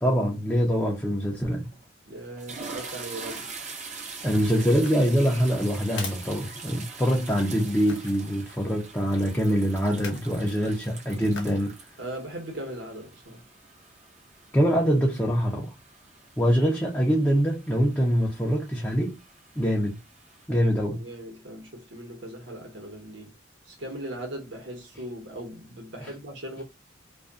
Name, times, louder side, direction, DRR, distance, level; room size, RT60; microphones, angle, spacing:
voice 1, 0.0-1.7 4.2-11.8 14.5-15.7 16.4-19.2 19.6-20.0 20.5-21.0 26.0-26.1, equal, 10° left, 0.5 m, -24 dB
sound 1, 1.6-1.9 2.2-20.5, right 4 dB, 35° right, 0.6 m, -44 dB
voice 2, 2.1-3.5 12.0-13.4 20.5-23.3 23.6-26.6, right 1 dB, 65° right, 1.0 m, -39 dB
sound 2, 4.7-7.2 7.9-8.2 9.9-10.4 11.3-11.7 12.1-12.2, left 5 dB, 65° left, 0.7 m, -42 dB
2.6 x 2.4 x 2.4 m
head